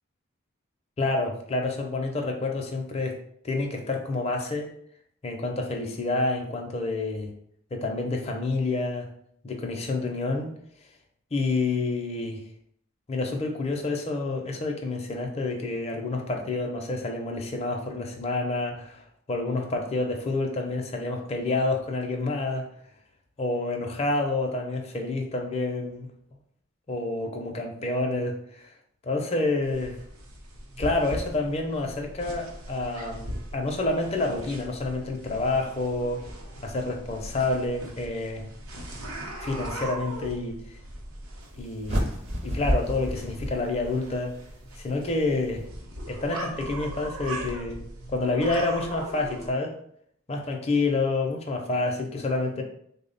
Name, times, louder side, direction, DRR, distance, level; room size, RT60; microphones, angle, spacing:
voice 1, 1.0-3.2 3.4-4.7 5.2-7.3 7.7-9.1 9.4-10.5 11.3-12.4 13.1-22.7 23.4-26.1 26.9-28.7 29.0-30.0 30.8-36.2 36.6-38.5 39.4-40.6 41.6-42.1 42.4-44.3 44.8-45.6 46.1-47.8 48.1-49.7 50.3-52.6, left 2 dB, 30° left, 1 dB, 0.4 m, -28 dB
sound 1, 29.6-49.5, right 1 dB, 85° right, 0.7 m, -40 dB
sound 2, 41.9-44.2, equal, 30° right, 0.5 m, -29 dB
3.5 x 2.1 x 3.8 m, 0.69 s
head